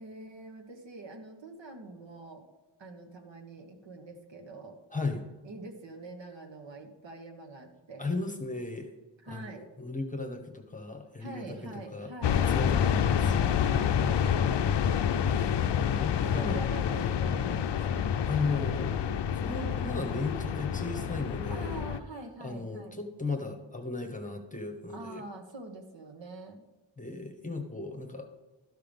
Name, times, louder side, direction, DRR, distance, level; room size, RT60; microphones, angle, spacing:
voice 1, 0.0-2.5 2.8-4.8 5.4-8.1 9.2-9.6 11.2-12.4 12.7-13.0 13.7-14.5 16.2-18.1 21.5-22.9 24.9-26.6, right 2 dB, 65° right, 4 dB, 1.5 m, -45 dB
voice 2, 4.9-5.2 8.0-8.9 9.3-13.5 15.3-15.5 16.0-16.6 18.3-18.9 19.3-21.8 22.4-25.3 27.0-28.3, left 3 dB, 15° left, 5 dB, 1.0 m, -36 dB
sound 1, 12.2-22.0, left 8 dB, 65° left, 0.6 m, -28 dB
12.5 x 5.8 x 5.2 m, 1.2 s
wide cardioid pair, 155°, 47 cm